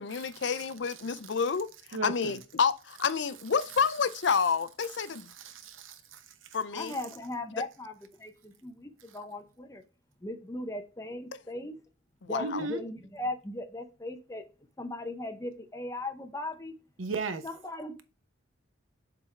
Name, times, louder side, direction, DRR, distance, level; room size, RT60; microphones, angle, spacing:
voice 1, 0.0-5.3 6.5-7.0 12.2-12.7, left 6 dB, 65° left, 0.5 m, -29 dB
voice 2, 1.9-2.4 5.4-6.2 12.4-12.8 17.0-17.4, right 3 dB, 90° right, 0.9 m, -35 dB
voice 3, 6.7-7.9 8.2-9.8 10.2-11.8 12.2-14.4 14.8-16.7 17.4-18.0, left 1 dB, 15° left, 0.8 m, -38 dB
6.8 x 3.7 x 4.4 m
head